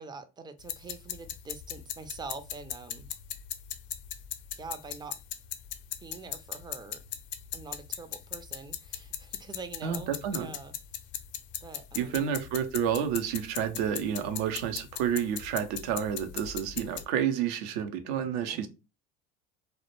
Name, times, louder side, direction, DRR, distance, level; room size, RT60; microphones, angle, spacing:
voice 1, 0.0-3.1 4.6-5.1 6.0-7.0 7.5-10.7 11.6-12.3 18.5-18.7, right 4 dB, 15° right, 9 dB, 0.3 m, -45 dB
sound 1, 0.6-17.0, left 10 dB, 65° left, 0.5 m, -40 dB
voice 2, 9.8-10.5 11.9-18.7, right 8 dB, 75° right, 9 dB, 0.5 m, -30 dB
2.1 x 2.0 x 2.9 m, 0.29 s
hypercardioid pair, 75°, 32 cm